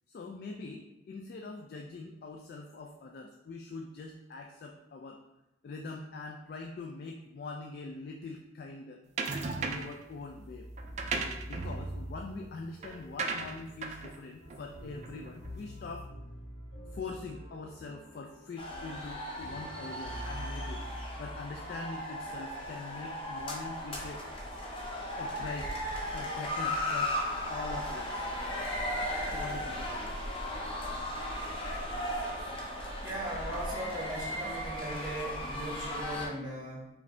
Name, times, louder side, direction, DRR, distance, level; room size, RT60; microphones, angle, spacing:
voice 1, 0.1-5.2 5.6-9.0 9.6-10.7 11.4-16.1 16.9-20.9 21.2-24.2 25.2-25.7 26.1-27.1 27.5-28.2 29.3-30.4, left 3 dB, 55° left, 3 dB, 0.3 m, -43 dB
sound 1, 9.2-10.0 10.8-15.5, right 4 dB, 35° right, 0.3 m, -37 dB
sound 2, 10.0-22.1, equal, 70° left, 1.2 m, -46 dB
sound 3, 18.6-36.3, left 1 dB, 30° left, 0.7 m, -36 dB
voice 2, 33.0-36.9, right 1 dB, 20° right, -5 dB, 1.4 m, -38 dB
4.9 x 2.6 x 3.2 m, 0.94 s
head